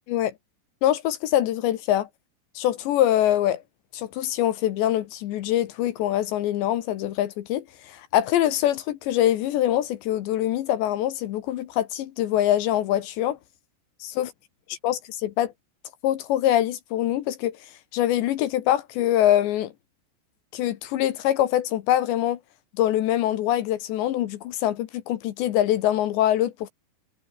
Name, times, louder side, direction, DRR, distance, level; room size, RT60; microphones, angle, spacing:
voice 1, 0.8-2.1 2.6-3.6 3.9-13.4 14.0-14.3 14.8-15.5 16.0-17.6 17.9-19.7 20.5-22.4 22.8-26.7, left 12 dB, 70° left, 3.1 m, -24 dB
omnidirectional pair, 6.0 m